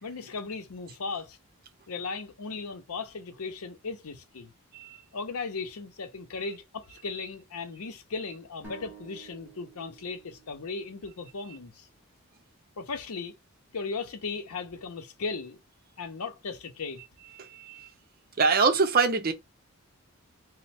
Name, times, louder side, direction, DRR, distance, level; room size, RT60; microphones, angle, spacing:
voice 1, 0.0-1.4 1.9-4.5 5.1-11.9 12.8-13.3 13.7-15.6 16.0-17.0, left 4 dB, 80° left, 0.7 m, -37 dB
sound 1, 8.6-12.3, right 4 dB, 10° right, 1.0 m, -51 dB
voice 2, 17.4-17.9 18.4-19.3, right 4 dB, 40° right, 0.6 m, -24 dB
3.1 x 2.1 x 4.1 m
head